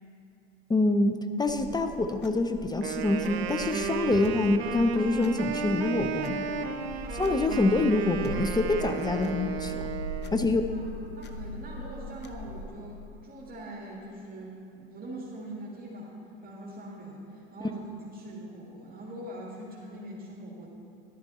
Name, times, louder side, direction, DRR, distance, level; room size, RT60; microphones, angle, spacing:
voice 1, 0.7-6.5 7.1-9.9 10.3-10.6, left 2 dB, 15° left, 7 dB, 0.5 m, -26 dB
sound 1, 1.5-12.7, left 1 dB, 35° left, 0.9 m, -41 dB
Wind instrument woodwind instrument, 2.7-10.5, right 7 dB, 85° right, 0.7 m, -34 dB
voice 2, 10.3-16.1 16.4-20.7, right 1 dB, 30° right, -4 dB, 1.8 m, -43 dB
11.0 x 10.5 x 4.1 m, 2.8 s
hypercardioid pair, 85°, 30 cm